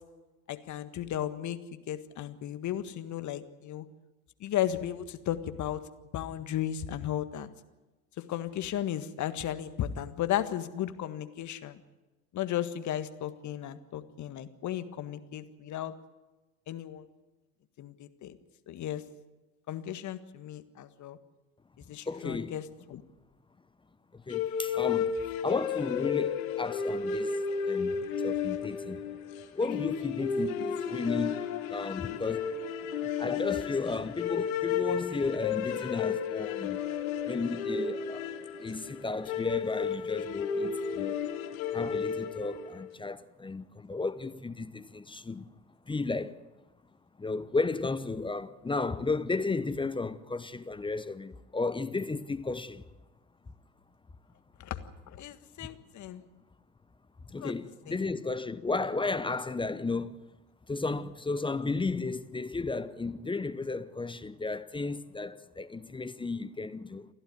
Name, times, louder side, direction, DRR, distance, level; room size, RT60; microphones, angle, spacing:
voice 1, 0.5-3.9 4.4-5.8 6.1-7.5 8.3-11.8 12.3-15.9 16.7-17.1 17.8-18.4 18.7-19.0 19.7-21.2 21.9-23.0 54.6-54.8 55.1-56.2 57.4-57.5 57.9-58.0, left 11 dB, 40° left, 1.7 m, -35 dB
voice 2, 21.9-22.5 24.1-29.0 29.5-31.4 31.7-32.5 33.0-36.8 37.2-38.3 38.6-41.2 41.7-45.5 45.9-46.4 47.2-52.8 55.6-55.7 57.3-60.1 60.7-67.1, left 3 dB, 10° left, 0.8 m, -34 dB
sound 1, 24.3-42.8, left 7 dB, 65° left, 2.2 m, -33 dB
29.5 x 12.0 x 9.8 m
figure-of-eight pair, 70°, 45 cm